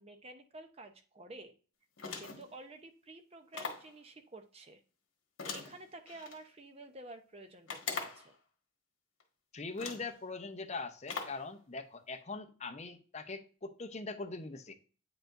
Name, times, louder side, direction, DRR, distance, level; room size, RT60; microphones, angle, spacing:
voice 1, 0.0-1.5 2.1-4.8 5.4-8.3, right 2 dB, 30° right, 0.7 m, -51 dB
sound 1, 2.0-2.5 3.5-3.9 5.4-6.4 7.7-8.3 9.2-9.3 9.8-10.1 11.1-11.5, left 5 dB, 65° left, 1.4 m, -41 dB
voice 2, 9.5-14.7, left 3 dB, 30° left, 0.7 m, -42 dB
8.9 x 4.9 x 2.5 m
head